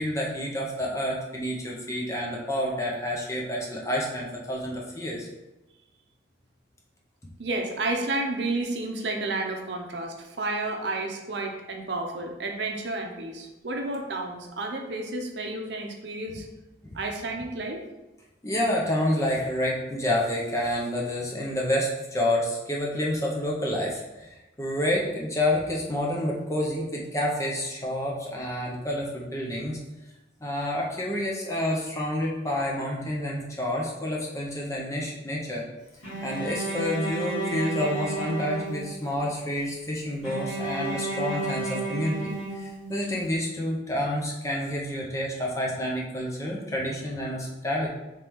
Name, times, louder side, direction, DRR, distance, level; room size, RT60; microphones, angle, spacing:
voice 1, 0.0-5.3 16.8-17.0 18.4-29.8 30.4-35.6 36.2-47.9, left 1 dB, 15° left, -3 dB, 0.7 m, -29 dB
voice 2, 7.4-16.5 16.9-17.8, right 2 dB, 70° right, 2 dB, 0.7 m, -31 dB
Bowed string instrument, 36.0-39.2 40.2-43.2, right 2 dB, 80° left, 1.6 m, -32 dB
4.6 x 3.3 x 3.5 m, 1.0 s
head